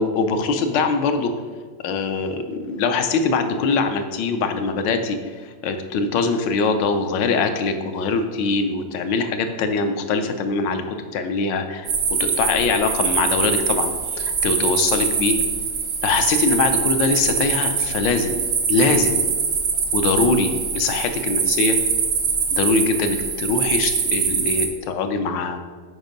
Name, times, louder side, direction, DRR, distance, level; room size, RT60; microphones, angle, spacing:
voice 1, 0.0-1.3 1.8-15.4 16.0-19.3 19.9-21.8 22.5-25.6, left 4 dB, 80° left, 7 dB, 1.4 m, -23 dB
sound 1, 11.9-24.7, right 6 dB, 85° right, 1.8 m, -23 dB
8.0 x 5.1 x 5.2 m, 1.5 s
omnidirectional pair, 1.9 m